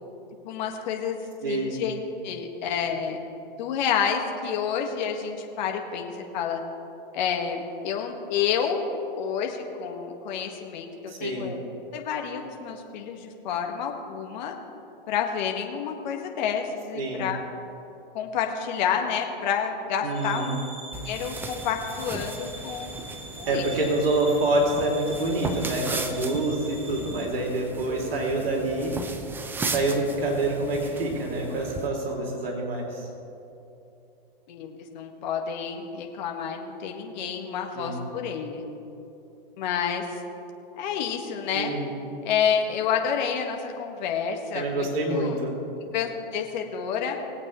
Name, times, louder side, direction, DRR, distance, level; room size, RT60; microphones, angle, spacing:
voice 1, 0.4-3.2 3.6-6.6 7.1-8.8 9.2-11.6 11.9-14.5 15.1-17.4 18.1-20.4 21.0-23.0 23.4-23.7 34.5-38.6 39.6-40.2 40.7-41.7 42.2-45.4 45.9-47.2, left 7 dB, 50° left, 2 dB, 1.8 m, -29 dB
voice 2, 1.4-1.8 11.1-11.5 16.9-17.3 20.0-20.6 23.5-29.0 29.7-33.1 37.7-38.0 41.5-41.9 44.5-45.5, right 2 dB, 75° right, -1 dB, 2.9 m, -27 dB
sound 1, 20.1-27.2, right 2 dB, 30° right, 2.8 m, -43 dB
sound 2, 20.9-31.9, right 3 dB, 5° right, 0.5 m, -36 dB
20.5 x 8.6 x 3.2 m, 2.8 s
hypercardioid pair, 135°, 29 cm